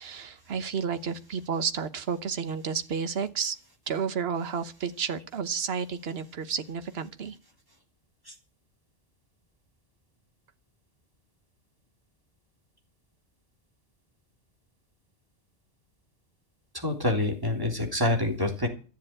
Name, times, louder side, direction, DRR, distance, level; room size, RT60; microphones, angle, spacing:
voice 1, 0.0-3.6 3.9-7.4, right 6 dB, 65° right, 11 dB, 1.3 m, -31 dB
voice 2, 16.7-18.7, left 1 dB, 20° right, 2 dB, 3.4 m, -27 dB
14.5 x 7.3 x 8.8 m, 0.36 s
omnidirectional pair, 1.1 m